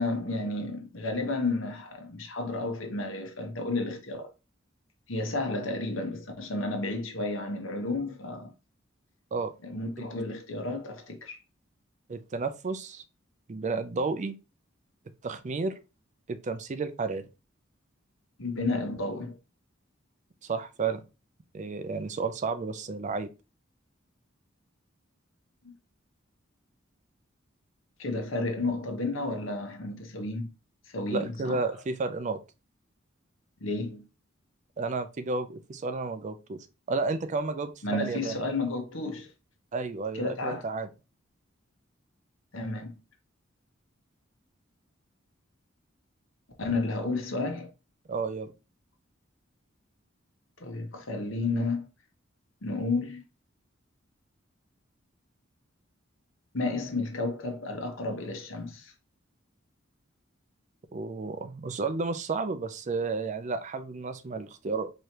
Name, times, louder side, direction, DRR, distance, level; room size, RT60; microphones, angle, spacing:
voice 1, 0.0-4.3 5.1-8.5 9.6-11.4 18.4-19.4 25.6-25.7 28.0-30.5 30.9-31.6 33.6-34.0 37.8-39.3 40.1-40.6 42.5-43.0 46.6-47.7 50.6-51.9 52.6-53.2 56.5-58.9, left 2 dB, 75° left, 1.1 m, -32 dB
voice 2, 12.1-13.0 13.5-14.4 15.2-15.8 16.3-17.3 20.4-21.0 21.5-23.3 31.1-32.4 34.8-38.4 39.7-40.9 48.1-48.5 60.9-64.9, right 4 dB, 35° right, 0.4 m, -32 dB
4.7 x 3.1 x 2.8 m
head